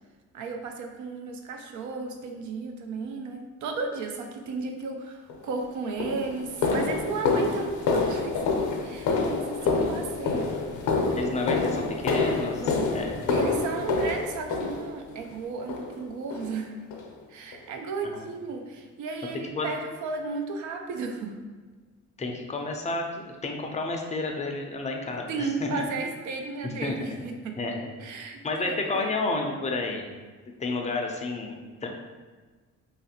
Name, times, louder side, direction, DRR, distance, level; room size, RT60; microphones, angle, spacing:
voice 1, 0.3-10.5 12.6-12.9 13.3-16.7 17.3-21.4 25.3-27.6 28.0-29.1, right 4 dB, 75° right, 4 dB, 0.5 m, -34 dB
sound 1, 5.3-5.4 6.0-15.2 15.7-16.0 16.3-16.5 16.9-17.1 17.5-17.6 18.1-18.2, left 4 dB, 80° left, 0.5 m, -27 dB
voice 2, 11.2-13.2 18.1-18.3 19.6-19.7 22.2-25.8 26.6-27.1 27.6-27.9 28.4-30.1 30.6-31.9, left 3 dB, 25° left, 2 dB, 0.4 m, -31 dB
2.9 x 2.4 x 2.7 m, 1.4 s
cardioid pair, 90°, 30 cm